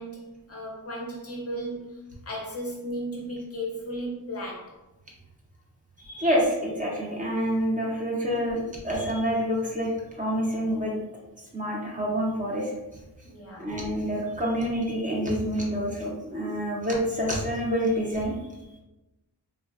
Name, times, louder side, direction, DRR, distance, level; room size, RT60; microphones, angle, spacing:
voice 1, 0.0-2.0 2.3-4.7 13.2-13.7, equal, 35° left, -3 dB, 0.5 m, -35 dB
voice 2, 6.0-9.9 10.1-10.9 11.5-12.7 13.6-18.3, equal, 20° right, -3 dB, 0.5 m, -27 dB
3.3 x 2.0 x 2.3 m, 1.0 s
wide cardioid pair, 145°, 41 cm